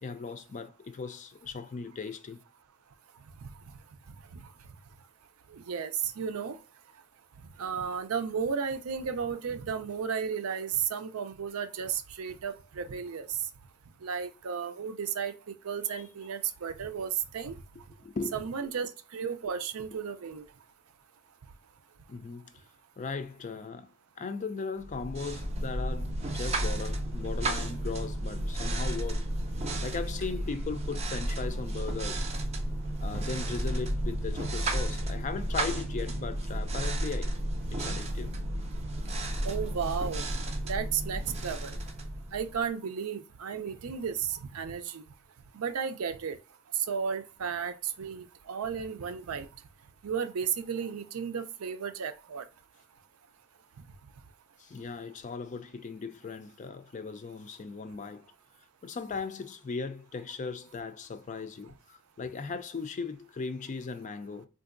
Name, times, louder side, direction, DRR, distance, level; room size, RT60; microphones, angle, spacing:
voice 1, 0.0-2.4 16.0-16.1 18.0-18.4 22.1-22.6 23.0-29.3 29.8-32.3 33.0-37.4 37.7-38.3 41.5-41.6 54.6-58.2 58.8-64.5, left 4 dB, 35° left, 0.4 m, -38 dB
voice 2, 5.5-6.6 7.6-13.4 14.0-17.5 18.3-20.5 39.4-40.2 40.6-41.8 42.3-45.0 45.5-46.4 46.8-49.5 50.0-52.4, right 7 dB, 80° right, 0.5 m, -33 dB
sound 1, 24.8-42.7, right 1 dB, 30° right, 0.5 m, -32 dB
3.8 x 2.5 x 2.5 m
head